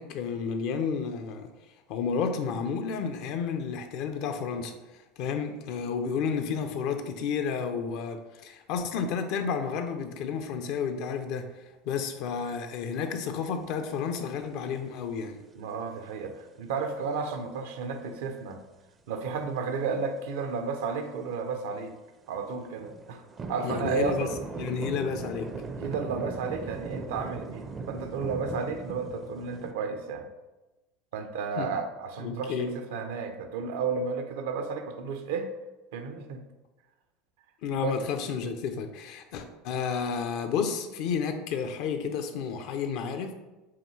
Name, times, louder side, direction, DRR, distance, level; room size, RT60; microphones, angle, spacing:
voice 1, 0.0-1.5 1.9-4.7 5.2-11.5 11.8-15.4 23.6-24.3 24.6-25.5 31.6-31.7 32.2-32.8 37.6-43.3, left 6 dB, 65° left, 7 dB, 0.5 m, -31 dB
sound 1, 14.6-14.7 19.2-19.4 22.3-29.7, right 4 dB, 30° right, 0.4 m, -38 dB
voice 2, 15.6-18.6 19.1-21.9 22.3-23.2 23.5-24.3 25.8-30.3 31.1-35.5 35.9-36.4 37.8-38.0, right 5 dB, 75° right, 6 dB, 0.5 m, -32 dB
5.6 x 2.3 x 3.2 m, 1.1 s
hypercardioid pair, 90°, 0 cm